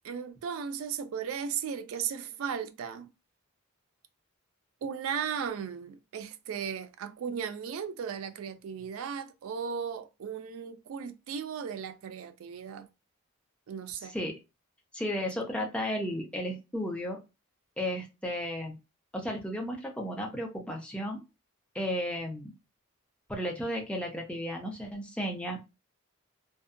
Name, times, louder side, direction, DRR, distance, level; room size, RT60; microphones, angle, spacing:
voice 1, 0.0-3.1 4.8-12.9 13.7-14.1, right 7 dB, 80° right, 0.3 m, -36 dB
voice 2, 14.1-14.4 14.9-17.2 17.8-18.8 19.1-21.2 21.7-22.5 23.3-25.6, equal, 5° left, 0.4 m, -34 dB
2.6 x 2.2 x 2.4 m
head